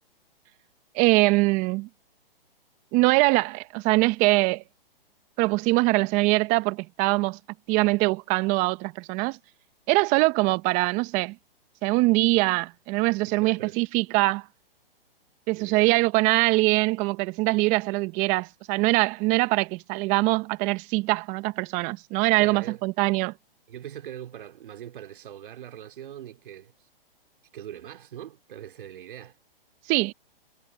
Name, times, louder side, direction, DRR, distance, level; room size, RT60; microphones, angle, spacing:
voice 1, 0.9-1.9 2.9-4.6 5.4-7.4 7.7-9.4 9.9-11.3 11.8-14.4 15.5-23.3 29.9-30.1, right 23 dB, 25° right, 1.0 m, -23 dB
voice 2, 13.3-13.8 15.5-16.0 22.4-22.9 23.7-26.7 27.5-29.4, right 10 dB, 60° right, 3.3 m, -42 dB
hypercardioid pair, 140°, 29 cm